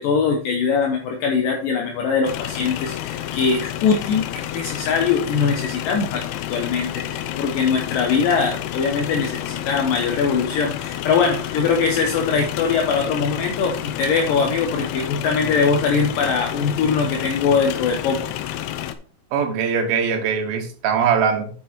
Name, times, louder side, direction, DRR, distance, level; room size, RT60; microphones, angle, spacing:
voice 1, 0.0-18.3, left 5 dB, 70° left, 2 dB, 2.4 m, -22 dB
sound 1, 2.3-19.0, left 12 dB, 90° left, 2.8 m, -30 dB
voice 2, 19.3-21.5, right 6 dB, 75° right, 4 dB, 3.1 m, -21 dB
9.2 x 5.3 x 4.3 m, 0.42 s
omnidirectional pair, 4.5 m